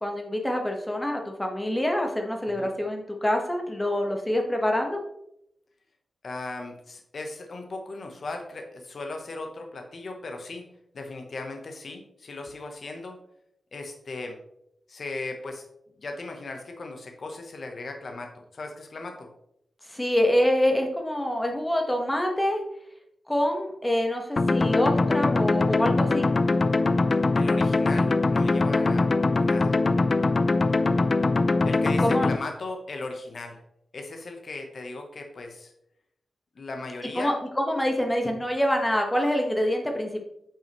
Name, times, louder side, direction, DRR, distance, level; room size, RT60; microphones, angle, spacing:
voice 1, 0.0-5.0 19.9-22.6 23.3-26.3 32.0-32.3 37.1-40.2, left 1 dB, 10° left, 2 dB, 1.2 m, -26 dB
voice 2, 6.2-10.7 10.9-13.2 13.7-14.4 14.9-15.6 16.0-19.3 27.3-29.1 29.4-29.8 31.6-33.6 33.9-35.7 36.6-37.4, left 2 dB, 50° left, 4 dB, 0.9 m, -37 dB
sound 1, 24.4-32.4, left 3 dB, 35° left, 0.3 m, -22 dB
8.7 x 5.3 x 3.0 m, 0.78 s
wide cardioid pair, 145°, 0 cm